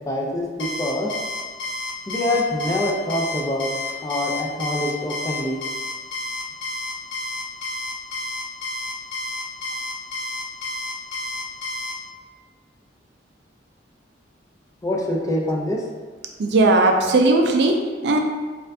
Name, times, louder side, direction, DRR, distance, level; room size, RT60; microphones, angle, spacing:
voice 1, 0.1-1.1 2.1-5.6 14.8-15.8, left 1 dB, 20° left, -1 dB, 0.5 m, -25 dB
Alarm, 0.6-11.9, left 2 dB, 80° left, 0.6 m, -30 dB
voice 2, 16.4-18.2, right 2 dB, 65° right, 3 dB, 0.4 m, -17 dB
4.2 x 2.5 x 2.6 m, 1.4 s
head